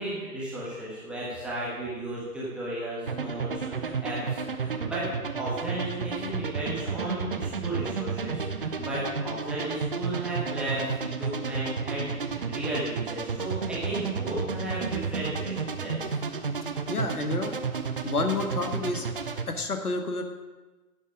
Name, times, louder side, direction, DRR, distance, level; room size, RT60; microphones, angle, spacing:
voice 1, 0.0-5.1 5.3-16.0, right 1 dB, ahead, -8 dB, 1.1 m, -34 dB
sound 1, 3.1-19.4, right 5 dB, 35° right, 0.7 m, -32 dB
voice 2, 16.9-17.6 18.0-19.1 19.5-20.2, left 3 dB, 70° left, 5 dB, 1.7 m, -29 dB
12.0 x 8.6 x 5.0 m, 1.2 s
figure-of-eight pair, 140°, 46 cm